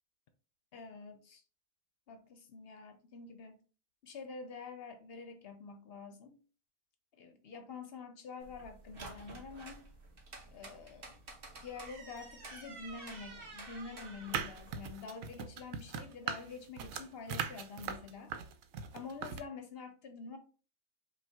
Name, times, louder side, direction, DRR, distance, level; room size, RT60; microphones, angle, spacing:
voice 1, 0.7-1.4 2.1-3.6 4.0-6.4 7.2-9.8 10.5-11.2 11.6-18.3 18.9-20.4, left 4 dB, 60° left, 0.7 m, -47 dB
sound 1, 8.4-14.9, right 3 dB, 45° right, 1.2 m, -50 dB
sound 2, 14.3-19.4, right 7 dB, 90° right, 1.0 m, -39 dB
5.3 x 2.3 x 3.4 m
omnidirectional pair, 1.4 m